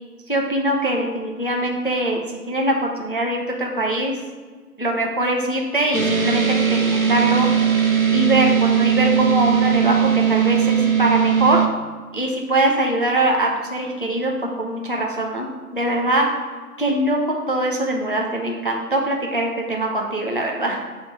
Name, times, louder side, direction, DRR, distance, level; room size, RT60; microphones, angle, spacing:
voice 1, 0.3-4.1 4.8-7.5 8.1-11.6 12.1-15.5 15.7-16.3 16.8-17.2 17.5-20.8, right 1 dB, 35° left, 0 dB, 0.6 m, -22 dB
sound 1, 5.9-11.7, right 8 dB, 60° right, 0.8 m, -19 dB
6.1 x 3.6 x 5.4 m, 1.4 s
figure-of-eight pair, 160°, 46 cm